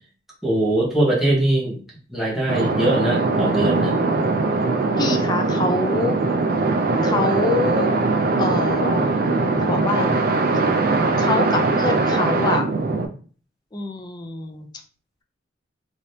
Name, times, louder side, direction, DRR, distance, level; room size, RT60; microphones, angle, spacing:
voice 1, 0.4-1.8 2.1-4.0, right 1 dB, ahead, -6 dB, 1.0 m, -21 dB
sound 1, 2.5-13.1, right 3 dB, 50° right, 0.4 m, -21 dB
voice 2, 5.0-6.2 7.0-8.0 8.4-9.1 9.6-10.3 11.2-12.6 13.7-14.7, left 2 dB, 20° left, 4 dB, 0.4 m, -25 dB
3.3 x 2.8 x 2.7 m, 0.40 s
head